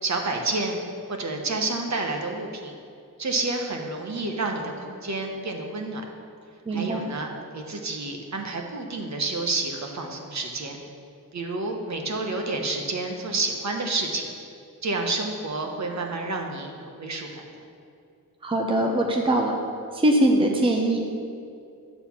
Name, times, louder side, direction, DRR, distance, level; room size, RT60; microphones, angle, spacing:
voice 1, 0.0-0.8 1.1-2.8 3.2-6.0 6.7-10.8 11.3-14.3 14.8-17.4, right 3 dB, 50° right, 2 dB, 1.1 m, -29 dB
voice 2, 6.7-7.0 18.4-19.6 19.9-21.0, right 1 dB, 15° right, 1 dB, 0.7 m, -22 dB
10.0 x 4.1 x 7.1 m, 2.5 s
wide cardioid pair, 145°, 36 cm